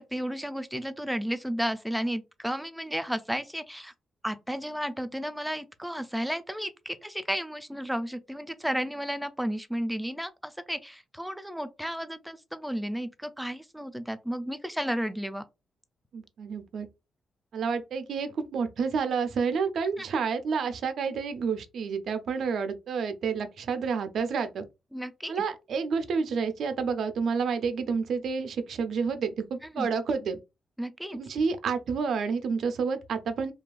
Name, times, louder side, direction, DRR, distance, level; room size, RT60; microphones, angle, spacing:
voice 1, 0.0-3.9 4.2-15.4 20.0-20.1 24.9-25.4 29.7-29.9 30.8-31.2, equal, 5° right, 0.4 m, -33 dB
voice 2, 16.1-16.9 17.5-24.7 25.3-30.4 31.1-33.5, right 5 dB, 70° right, 0.4 m, -29 dB
2.7 x 2.3 x 2.3 m
cardioid pair, 65°, 0 cm